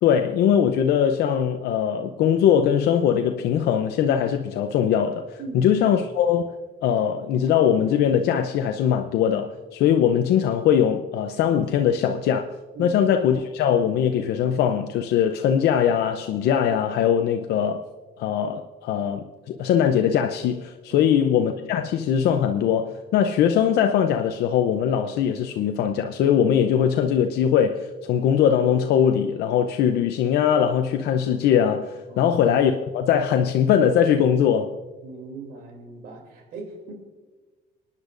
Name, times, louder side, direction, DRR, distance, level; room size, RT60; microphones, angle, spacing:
voice 1, 0.0-5.2 5.5-6.4 6.8-12.5 12.8-17.8 18.2-34.7, left 8 dB, 75° left, 0.7 m, -21 dB
voice 2, 35.0-36.9, right 3 dB, 70° right, 3.0 m, -39 dB
26.5 x 10.0 x 2.6 m
cardioid pair, 110°, 17 cm